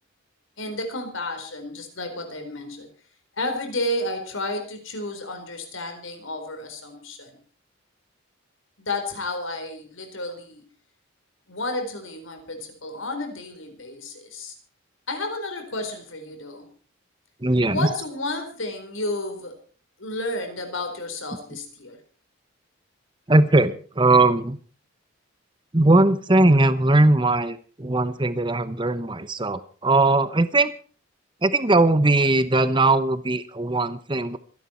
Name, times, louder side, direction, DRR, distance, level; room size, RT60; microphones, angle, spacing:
voice 1, 0.6-2.9 3.4-7.3 8.8-10.6 11.5-14.5 15.1-16.7 17.7-19.6 20.0-22.0, left 2 dB, 70° left, 6 dB, 4.4 m, -31 dB
voice 2, 17.4-17.9 23.3-24.6 25.7-30.7 31.4-34.4, right 2 dB, 25° right, 14 dB, 1.0 m, -19 dB
25.5 x 11.0 x 4.5 m, 0.40 s
head